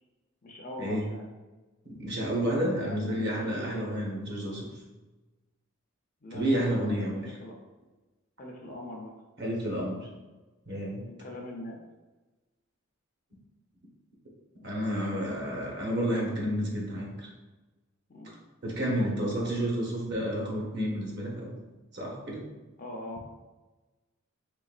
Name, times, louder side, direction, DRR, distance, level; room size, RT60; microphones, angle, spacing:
voice 1, 0.4-1.2 2.8-3.9 6.2-7.6 8.4-9.1 11.0-11.8 18.1-18.9 19.4-19.5 22.8-23.3, left 1 dB, 40° left, 0 dB, 0.5 m, -42 dB
voice 2, 1.8-4.8 6.3-7.4 9.4-10.0 10.6-11.0 14.6-17.3 18.6-21.6 21.9-22.5, equal, 50° right, -3 dB, 1.0 m, -30 dB
3.9 x 3.6 x 2.4 m, 1.2 s
head